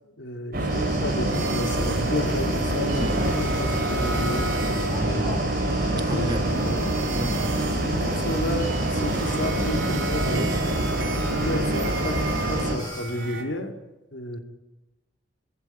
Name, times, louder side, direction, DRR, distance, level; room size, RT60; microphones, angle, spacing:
voice 1, 0.2-5.4 5.9-6.9 7.7-10.6 11.1-13.7 14.1-14.4, left 1 dB, 70° left, 3.1 m, -32 dB
sound 1, 0.5-12.8, right 1 dB, 55° right, 5.1 m, -25 dB
sound 2, 0.7-13.0, left 1 dB, 20° left, 7.9 m, -39 dB
sound 3, 1.3-5.0 5.4-13.4, right 4 dB, 85° right, 5.1 m, -37 dB
voice 2, 6.1-6.5 7.1-7.6, right 1 dB, 20° right, 1.3 m, -31 dB
24.5 x 15.5 x 9.5 m
head